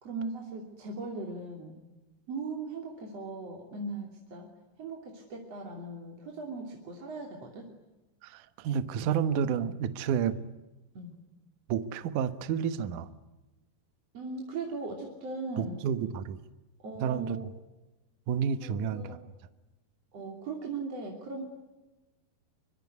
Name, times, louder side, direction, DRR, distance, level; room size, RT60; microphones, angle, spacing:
voice 1, 0.0-1.8 2.3-4.5 4.8-7.7 10.9-11.2 14.1-15.8 16.8-17.5 18.6-19.2 20.1-21.4, right 3 dB, 40° right, 1 dB, 3.7 m, -39 dB
voice 2, 8.2-10.4 11.7-13.1 15.6-16.4 17.0-17.4 18.3-19.2, right 8 dB, 65° right, 12 dB, 2.2 m, -30 dB
25.0 x 25.0 x 9.5 m, 1.1 s
omnidirectional pair, 4.9 m